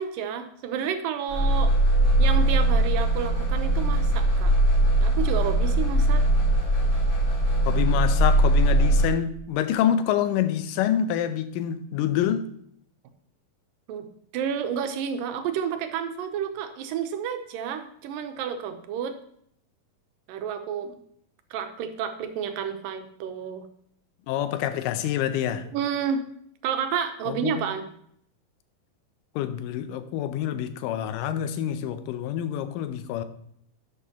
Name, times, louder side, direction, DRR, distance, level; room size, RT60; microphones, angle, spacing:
voice 1, 0.0-1.7 2.2-4.5 5.0-6.2 13.9-14.1 14.3-19.2 20.3-21.0 21.5-23.7 25.7-26.3 26.6-27.9, right 8 dB, 85° right, 2.5 m, -30 dB
sound 1, 1.3-9.1, right 1 dB, 35° left, 2.6 m, -21 dB
voice 2, 7.7-12.5 24.3-25.7 27.3-27.7 29.4-33.2, left 10 dB, 80° left, 2.3 m, -27 dB
11.5 x 6.9 x 2.9 m
omnidirectional pair, 3.9 m